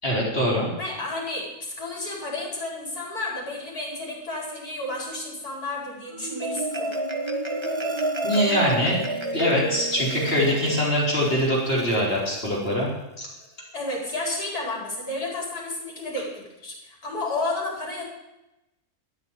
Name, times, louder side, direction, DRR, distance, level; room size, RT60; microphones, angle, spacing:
voice 1, 0.0-0.7 8.2-12.9 13.2-13.3, equal, 35° left, -4 dB, 4.6 m, -23 dB
voice 2, 0.8-7.0 13.7-18.1, left 2 dB, 75° left, -2 dB, 5.4 m, -31 dB
Marimba xylophone, 6.1-12.7, right 2 dB, 20° right, 1.3 m, -30 dB
13.5 x 8.9 x 9.1 m, 0.95 s
omnidirectional pair, 1.6 m